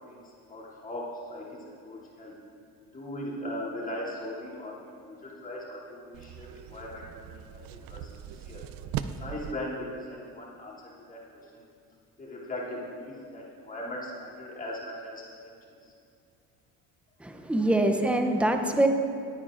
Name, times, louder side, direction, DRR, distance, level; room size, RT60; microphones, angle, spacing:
voice 1, 0.0-2.4 2.9-8.6 9.2-10.8 11.1-11.6 12.2-15.6 15.8-15.9, left 1 dB, 25° left, -6 dB, 2.8 m, -39 dB
sound 1, 6.1-9.5, right 9 dB, 75° right, 0.5 m, -39 dB
voice 2, 17.2-18.9, right 1 dB, 5° right, 5 dB, 0.6 m, -24 dB
19.5 x 9.6 x 2.5 m, 2.4 s
cardioid pair, 135°, 34 cm